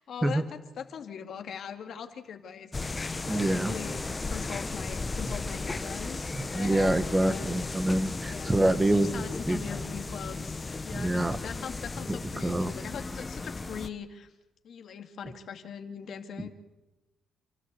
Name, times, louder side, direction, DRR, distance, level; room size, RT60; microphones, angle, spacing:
voice 1, 0.0-2.7 3.3-7.6 8.2-14.3 14.6-16.5, left 7 dB, 65° left, 6 dB, 2.3 m, -41 dB
sound 1, 2.7-13.9, left 3 dB, 25° left, 1.2 m, -35 dB
voice 2, 3.3-3.7 6.3-9.6 10.9-11.4 12.1-12.7 16.4-16.5, right 1 dB, 15° right, 10 dB, 1.6 m, -26 dB
29.5 x 13.0 x 8.4 m, 1.1 s
cardioid pair, 90°, 0 cm